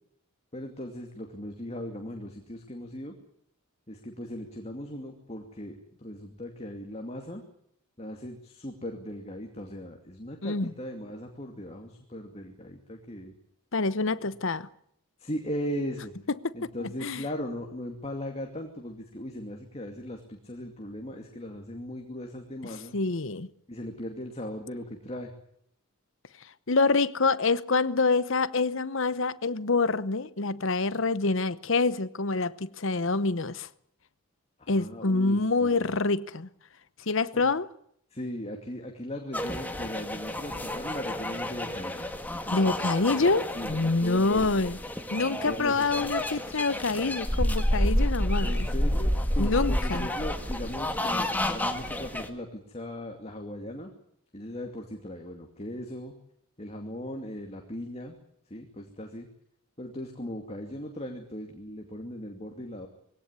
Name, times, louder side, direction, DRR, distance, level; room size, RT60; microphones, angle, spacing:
voice 1, 0.5-3.2 3.9-7.4 8.0-13.3 15.2-16.1 16.5-23.0 23.7-25.3 34.6-35.9 37.3-37.4 38.1-42.1 42.3-43.3 43.5-44.6 45.3-45.9 48.4-53.9 54.3-56.1 56.6-58.2 58.5-59.3 59.8-62.9, left 1 dB, 30° left, 2.5 m, -38 dB
voice 2, 13.7-14.7 16.8-17.2 22.9-23.5 26.7-33.7 34.7-36.5 37.1-37.7 42.5-44.8 45.1-48.7 49.4-50.1, left 3 dB, 60° left, 0.9 m, -26 dB
sound 1, 39.3-52.3, left 1 dB, 10° left, 1.8 m, -30 dB
22.0 x 17.0 x 9.7 m
head